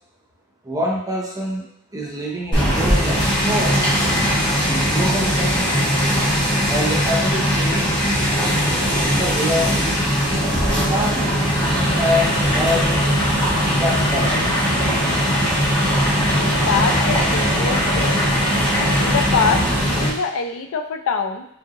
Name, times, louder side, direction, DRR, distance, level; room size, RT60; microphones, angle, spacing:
voice 1, 0.6-1.7 1.9-3.8 4.6-5.7 6.7-7.9 8.7-10.0 10.6-11.3 12.0-13.1 13.7-14.5, left 1 dB, 15° right, -2 dB, 0.7 m, -25 dB
sound 1, 2.5-20.1, equal, 20° left, 1.3 m, -19 dB
voice 2, 16.3-18.2 19.0-21.5, left 5 dB, 65° left, 5 dB, 0.4 m, -24 dB
4.9 x 2.6 x 2.9 m, 0.71 s
head